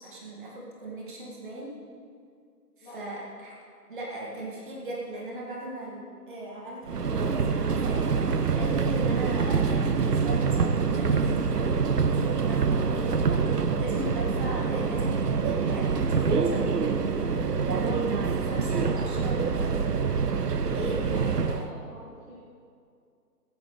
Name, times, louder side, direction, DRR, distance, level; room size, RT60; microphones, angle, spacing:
voice 1, 0.0-1.8 2.8-3.5 3.9-8.1 8.6-18.1 18.4-19.6 20.7-21.0, right 1 dB, 30° right, -4 dB, 1.9 m, -38 dB
Subway metro underground, 6.9-21.7, right 5 dB, 75° right, 0.8 m, -26 dB
voice 2, 19.0-19.3 20.9-22.4, equal, 10° left, -9 dB, 2.1 m, -45 dB
15.0 x 11.5 x 3.2 m, 2.3 s
figure-of-eight pair, 150°, 48 cm